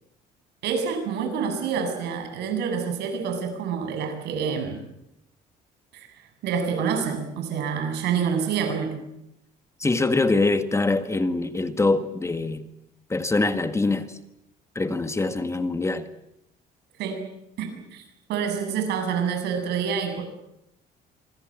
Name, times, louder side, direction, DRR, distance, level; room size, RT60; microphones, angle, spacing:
voice 1, 0.6-4.8 5.9-6.1 6.4-9.0 17.0-17.2 17.6-18.0 18.3-20.3, right 6 dB, 80° right, 6 dB, 7.2 m, -27 dB
voice 2, 9.8-12.6 13.1-14.2 14.7-16.1, left 3 dB, 15° left, 9 dB, 1.7 m, -24 dB
26.0 x 24.0 x 7.5 m, 0.81 s
cardioid pair, 110°, 17 cm